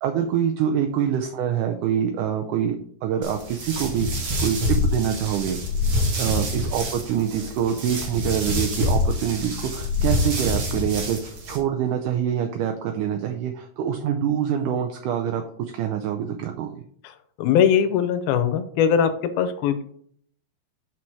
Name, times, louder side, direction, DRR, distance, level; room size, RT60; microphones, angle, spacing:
voice 1, 0.0-5.6 6.2-11.2 11.5-16.7, right 9 dB, 90° right, 5 dB, 1.8 m, -25 dB
sound 1, 3.2-11.6, left 1 dB, 45° right, 2.1 m, -26 dB
voice 2, 17.4-19.1 19.4-19.8, left 8 dB, 80° left, 11 dB, 2.5 m, -20 dB
6.1 x 5.8 x 4.6 m, 0.62 s
omnidirectional pair, 4.4 m